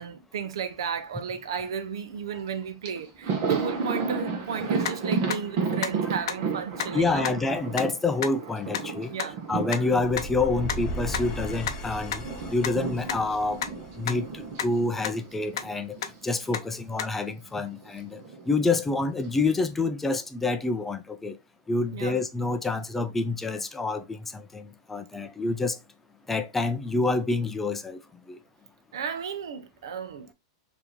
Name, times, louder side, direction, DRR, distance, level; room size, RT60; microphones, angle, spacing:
voice 1, 0.0-7.4 9.1-9.4 21.9-22.2 28.9-30.3, right 7 dB, 85° right, 0.7 m, -33 dB
Thunder, 2.5-2.6 2.8-11.7 11.9-16.2 16.5-16.7 17.8-18.5, right 5 dB, 50° right, 1.1 m, -33 dB
sound 1, 4.9-5.0 5.3-5.4 5.8-5.9 6.3-6.4 6.8-6.9 7.2-7.3 7.8-7.9 8.2-8.3 8.7-8.8 9.2-9.3 9.7-9.8 10.2-10.3 10.7-10.8 11.1-11.2 11.7-11.8 12.1-12.2 12.6-12.7 13.1-13.2 13.6-13.7 14.1-14.2 14.6-14.7 15.0-15.1 15.5-15.6 16.0-16.1 16.5-16.6 17.0-17.1, left 9 dB, 70° left, 0.5 m, -29 dB
voice 2, 6.9-9.1 9.5-13.6 14.0-16.0 16.2-18.2 18.5-21.4 21.7-25.8 26.3-28.0 28.3-28.4, left 3 dB, 10° left, 0.4 m, -27 dB
sound 2, 9.9-14.9, right 1 dB, 25° left, 0.8 m, -37 dB
4.7 x 2.7 x 2.9 m
supercardioid pair, 150°, 2 cm